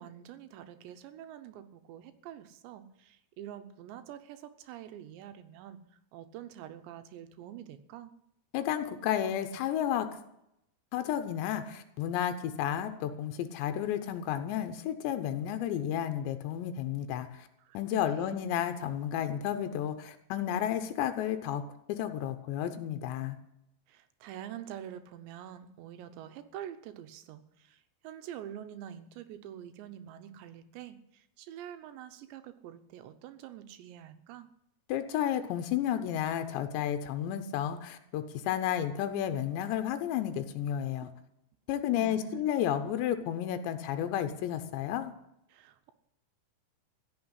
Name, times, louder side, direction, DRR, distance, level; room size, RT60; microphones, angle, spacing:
voice 1, 0.0-5.8 6.1-8.1 17.6-18.4 23.9-34.5 42.0-42.4 45.5-45.9, right 10 dB, 90° right, 10 dB, 3.2 m, -46 dB
voice 2, 8.5-10.1 10.9-17.5 17.7-21.6 21.9-23.4 34.9-41.1 41.7-45.1, left 10 dB, 90° left, 8 dB, 3.2 m, -32 dB
16.0 x 6.7 x 9.7 m, 0.80 s
omnidirectional pair, 5.0 m